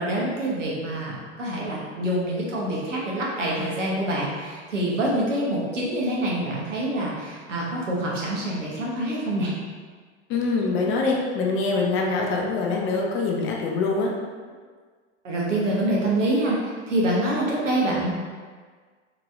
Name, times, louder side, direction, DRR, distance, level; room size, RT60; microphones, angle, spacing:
voice 1, 0.0-9.5 15.2-16.6 16.9-18.2, right 1 dB, 85° right, -4 dB, 0.9 m, -26 dB
voice 2, 10.3-14.1, left 3 dB, 35° left, 0 dB, 0.5 m, -24 dB
2.9 x 2.8 x 2.3 m, 1.6 s
hypercardioid pair, 85°, 36 cm